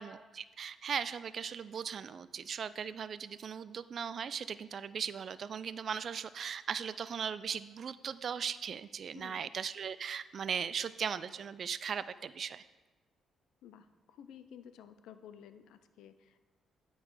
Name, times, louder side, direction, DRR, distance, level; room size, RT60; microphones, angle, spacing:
voice 1, 0.0-12.6, right 7 dB, 55° right, 15 dB, 0.3 m, -38 dB
voice 2, 9.1-9.4 13.6-16.4, left 8 dB, 85° left, 11 dB, 0.5 m, -53 dB
11.0 x 3.9 x 4.7 m, 1.2 s
cardioid pair, 90°, 0 cm